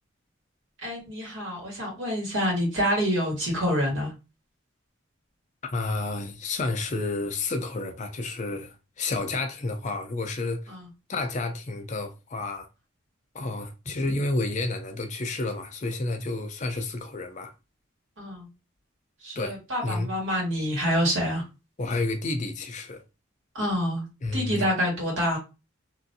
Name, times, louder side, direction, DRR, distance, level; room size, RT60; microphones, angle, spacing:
voice 1, 0.8-4.1 10.7-10.8 18.2-18.5 19.2-21.4 23.6-24.0 24.3-25.4, equal, 75° right, 1.7 m, -27 dB
voice 2, 5.7-10.7 11.1-12.7 13.3-17.5 19.4-20.1 21.8-23.0 24.2-24.7, left 2 dB, 35° left, 0.5 m, -30 dB
3.0 x 2.6 x 2.7 m
head